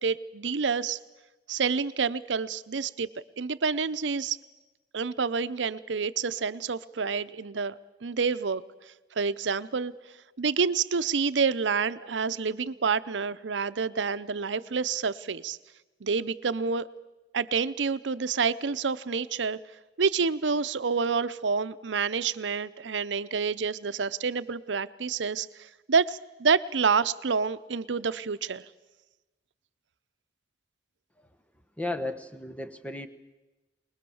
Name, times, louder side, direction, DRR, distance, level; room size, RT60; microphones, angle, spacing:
voice 1, 0.0-1.0 1.5-3.1 3.4-4.4 4.9-8.6 9.2-9.9 10.4-15.6 16.0-16.9 17.3-19.6 20.0-28.6, right 5 dB, 85° right, 14 dB, 0.7 m, -28 dB
voice 2, 31.8-33.1, left 2 dB, 10° left, 9 dB, 1.1 m, -34 dB
22.5 x 21.0 x 7.1 m, 1.1 s
head